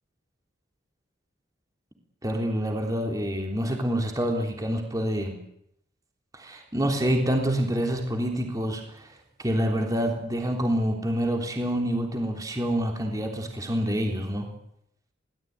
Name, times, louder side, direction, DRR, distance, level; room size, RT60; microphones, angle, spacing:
voice 1, 2.2-5.4 6.3-9.1 9.4-14.5, equal, 20° right, 2 dB, 3.7 m, -27 dB
23.5 x 18.0 x 9.6 m, 0.75 s
head